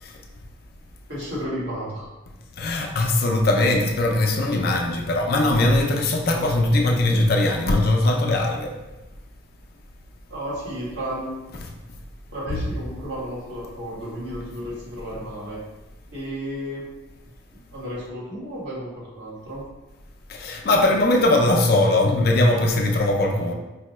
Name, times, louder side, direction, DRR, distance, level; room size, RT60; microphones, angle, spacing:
voice 1, 1.1-2.1 6.3-6.4 10.3-11.5 12.3-15.6 16.1-16.9 17.7-19.6, equal, 60° right, -7 dB, 1.4 m, -33 dB
voice 2, 2.6-8.7 20.3-23.5, left 2 dB, 50° left, 2 dB, 0.4 m, -20 dB
4.7 x 2.2 x 3.0 m, 1.1 s
head